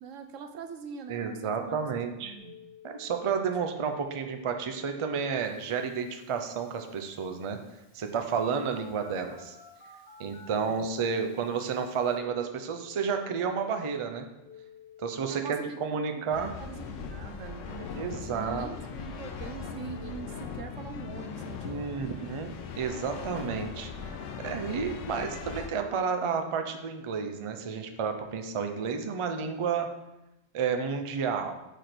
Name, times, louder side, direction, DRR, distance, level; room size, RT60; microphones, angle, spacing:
voice 1, 0.0-2.6 15.3-22.3, right 5 dB, 90° right, 6 dB, 1.1 m, -43 dB
voice 2, 1.1-2.3 2.8-7.6 7.9-9.6 10.2-14.3 15.0-16.5 17.9-18.7 21.6-29.9 30.5-31.5, right 6 dB, 40° right, 6 dB, 0.4 m, -31 dB
Telephone, 2.4-13.2 14.4-15.4 17.7-18.7 19.9-20.4, left 7 dB, 55° left, 2.0 m, -53 dB
sound 1, 16.3-25.7, left 6 dB, 90° left, 1.0 m, -39 dB
5.1 x 4.4 x 5.9 m, 0.95 s
omnidirectional pair, 1.3 m